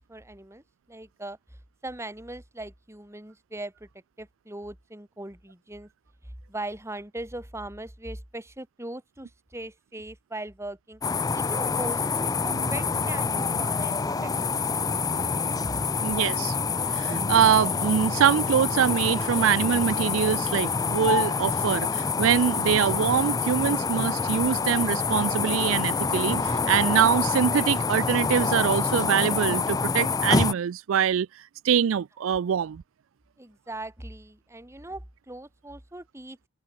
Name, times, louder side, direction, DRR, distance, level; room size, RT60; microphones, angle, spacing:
voice 1, 0.0-1.4 1.8-3.9 4.2-5.9 6.2-11.0 11.3-14.6 33.4-36.5, right 1 dB, 15° right, 2.0 m, -39 dB
sound 1, 11.0-30.5, left 4 dB, 20° left, 0.4 m, -26 dB
sound 2, 12.5-25.0, right 1 dB, 55° right, 2.6 m, -42 dB
voice 2, 16.0-16.6 16.9-31.3 31.6-32.8, right 8 dB, 75° right, 0.4 m, -24 dB
open air
head